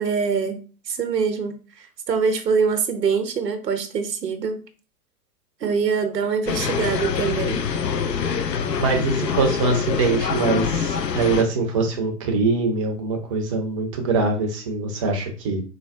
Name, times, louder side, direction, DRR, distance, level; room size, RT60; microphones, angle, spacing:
voice 1, 0.0-4.6 5.6-7.6, right 5 dB, 80° right, 8 dB, 0.7 m, -24 dB
sound 1, 6.5-11.4, left 6 dB, 85° left, 0.6 m, -25 dB
voice 2, 8.8-15.6, right 3 dB, 20° right, 3 dB, 0.4 m, -23 dB
4.1 x 2.2 x 2.4 m, 0.36 s
figure-of-eight pair, 105°, 48 cm